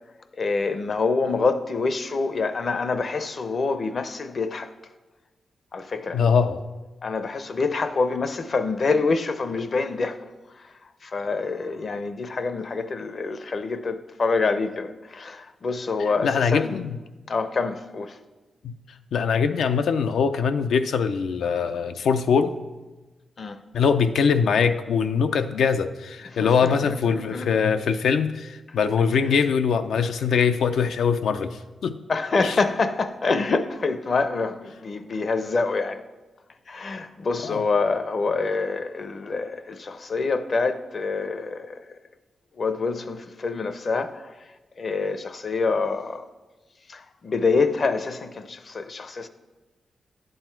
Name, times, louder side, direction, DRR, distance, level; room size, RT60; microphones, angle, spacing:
voice 1, 0.3-4.7 5.7-6.2 7.0-10.3 10.5-16.8 17.3-18.2 23.4-23.6 26.3-27.6 32.1-36.0 36.7-42.0 42.5-46.3 46.9-49.3, left 4 dB, 45° left, 0.6 m, -26 dB
voice 2, 6.1-6.6 16.2-17.0 18.6-18.7 19.1-22.5 23.7-32.0 32.4-32.5 37.4-37.6, left 6 dB, 90° left, 0.5 m, -22 dB
10.5 x 7.8 x 4.5 m
wide cardioid pair, 125°, 0 cm